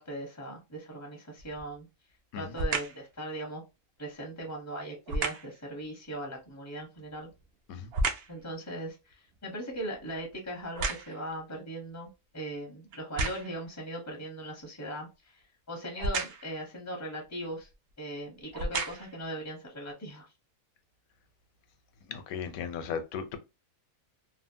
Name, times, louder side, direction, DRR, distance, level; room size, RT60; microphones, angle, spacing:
voice 1, 0.0-1.9 2.3-3.6 4.0-7.3 8.3-17.7 18.0-20.3, right 1 dB, 20° left, 0.5 m, -39 dB
sound 1, 1.4-1.8 2.5-3.1 5.1-5.6 7.0-8.4 8.9-11.4 12.0-12.1 12.9-13.7 16.0-16.6 17.6-17.7 18.4-19.2 19.9-20.0, right 3 dB, 70° right, 0.6 m, -33 dB
voice 2, 22.1-23.4, left 7 dB, 80° left, 1.0 m, -36 dB
3.1 x 2.0 x 2.6 m
omnidirectional pair, 1.5 m